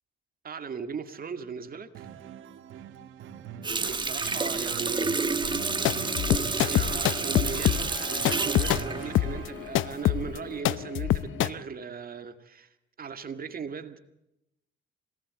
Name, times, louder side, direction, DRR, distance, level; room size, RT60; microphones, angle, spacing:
voice 1, 0.4-2.1 3.8-5.1 6.6-12.7 13.0-14.0, right 6 dB, 45° right, 2.1 m, -38 dB
sound 1, 1.9-9.8, right 9 dB, 80° right, 2.3 m, -43 dB
Water tap faucet, 3.6-10.0 10.4-10.6, right 4 dB, 25° right, 1.5 m, -30 dB
sound 2, 5.4-11.5, left 13 dB, 80° left, 0.8 m, -26 dB
25.5 x 18.5 x 7.7 m
cardioid pair, 90°, 20 cm